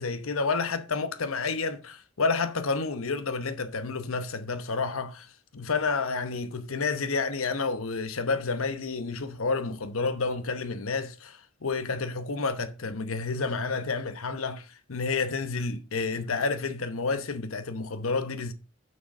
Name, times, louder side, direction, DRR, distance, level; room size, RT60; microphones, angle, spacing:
voice 1, 0.0-18.5, left 4 dB, 85° left, 1.0 m, -30 dB
7.7 x 6.2 x 5.3 m
head